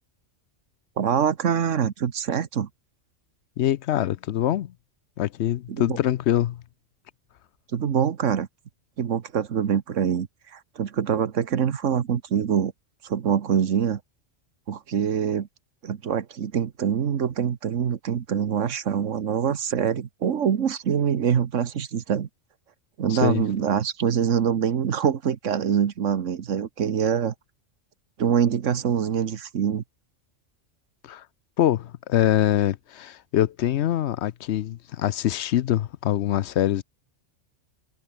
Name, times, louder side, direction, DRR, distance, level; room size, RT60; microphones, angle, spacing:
voice 1, 1.0-2.7 5.7-6.0 7.7-8.5 9.0-10.3 10.5-12.7 13.0-14.0 14.7-15.5 15.8-22.3 23.0-27.3 28.2-29.8, right 8 dB, 80° right, 1.5 m, -24 dB
voice 2, 3.6-4.7 5.2-6.6 23.1-23.4 31.0-31.2 31.6-36.8, left 12 dB, 70° left, 0.8 m, -24 dB
omnidirectional pair, 1.3 m